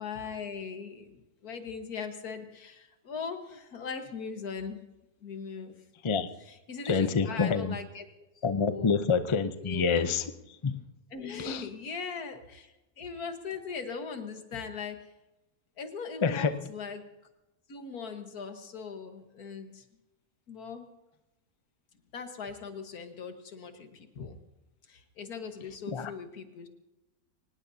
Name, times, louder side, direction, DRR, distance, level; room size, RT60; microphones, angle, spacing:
voice 1, 0.0-4.9 5.2-5.8 6.4-8.1 8.4-9.0 9.6-9.9 11.1-15.0 15.8-17.1 17.7-19.9 20.5-20.9 22.1-24.4 24.9-26.7, left 5 dB, 75° left, 6 dB, 1.9 m, -40 dB
voice 2, 6.9-7.7 8.4-10.3 10.6-10.8 11.4-11.6 16.2-16.7 25.9-26.1, left 5 dB, 40° left, 10 dB, 0.4 m, -27 dB
24.5 x 19.0 x 2.7 m, 1.0 s
omnidirectional pair, 1.6 m